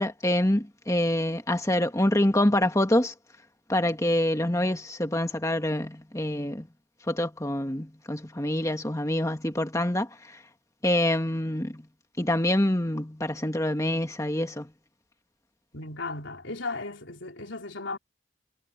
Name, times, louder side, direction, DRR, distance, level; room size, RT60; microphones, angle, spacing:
voice 1, 0.0-3.1 3.7-6.7 7.1-10.4 10.8-11.8 12.2-14.7, left 1 dB, 15° left, 1.7 m, -26 dB
voice 2, 15.7-18.0, left 3 dB, 75° left, 4.0 m, -35 dB
head